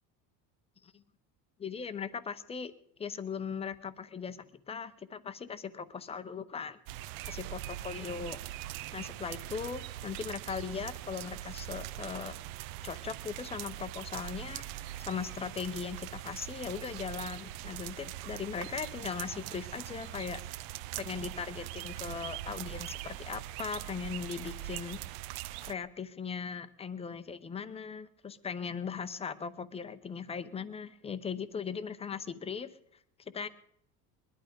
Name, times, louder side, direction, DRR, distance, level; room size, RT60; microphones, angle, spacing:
voice 1, 1.6-2.7 3.0-4.4 4.7-6.8 7.3-8.4 8.9-12.3 12.8-20.4 21.0-25.0 25.6-32.7 33.3-33.5, left 6 dB, 15° left, 12 dB, 0.6 m, -39 dB
sound 1, 6.9-25.7, right 14 dB, 75° right, 0.7 m, -42 dB
22.0 x 11.5 x 5.1 m, 0.70 s
cardioid pair, 160°, 39 cm